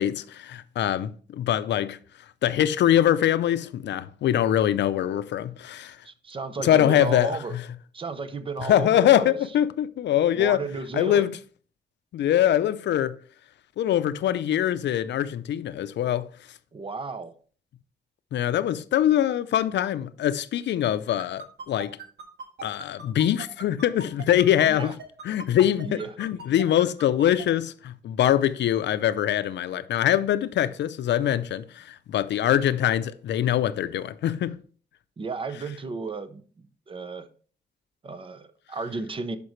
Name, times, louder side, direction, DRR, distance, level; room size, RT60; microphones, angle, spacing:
voice 1, 0.0-2.0 2.4-6.0 6.6-7.6 8.7-10.6 10.9-11.3 12.1-13.2 13.8-16.3 18.3-21.9 22.6-25.0 25.2-34.6, left 11 dB, 85° left, 0.5 m, -23 dB
voice 2, 6.0-7.6 7.9-9.4 10.3-11.3 16.7-17.3 24.6-24.9 25.8-26.2 35.2-37.3 38.0-39.4, right 4 dB, 30° right, 0.7 m, -34 dB
sound 1, 21.2-27.4, right 4 dB, 70° right, 1.8 m, -39 dB
11.0 x 5.2 x 3.1 m
wide cardioid pair, 140°, 18 cm